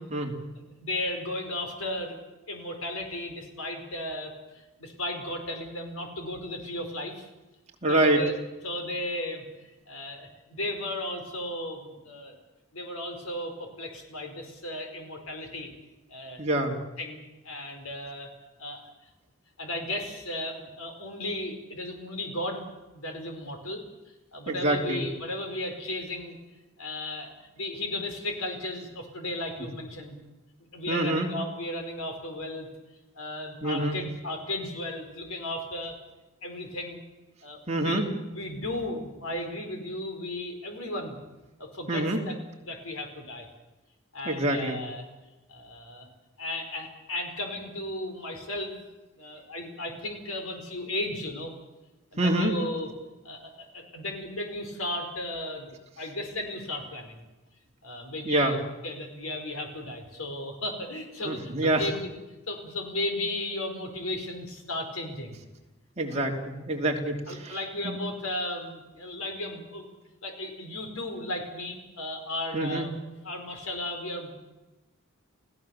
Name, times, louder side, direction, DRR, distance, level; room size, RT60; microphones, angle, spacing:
voice 1, 0.6-2.1 2.5-7.3 7.9-8.3 8.6-12.4 12.7-15.7 16.1-16.4 17.0-18.3 18.6-18.9 19.6-22.6 22.9-23.8 24.3-26.4 26.8-30.2 30.7-32.7 33.1-36.0 36.4-37.0 37.4-38.0 38.3-41.2 41.6-42.3 42.6-43.5 44.1-45.0 45.5-46.1 46.4-48.8 49.2-51.5 52.1-52.9 53.2-57.2 57.8-62.1 62.5-65.4 66.1-66.3 67.3-69.9 70.2-72.9 73.2-74.3, left 1 dB, 90° left, 4 dB, 4.9 m, -35 dB
voice 2, 7.8-8.2 16.4-16.7 24.5-25.0 30.9-31.3 33.6-34.0 37.7-38.1 41.9-42.2 44.2-44.8 52.2-52.5 58.2-58.5 61.2-61.9 66.0-67.6 67.8-68.0 72.5-72.8, right 1 dB, 30° right, 0 dB, 3.1 m, -26 dB
29.5 x 16.5 x 7.2 m, 1.1 s
head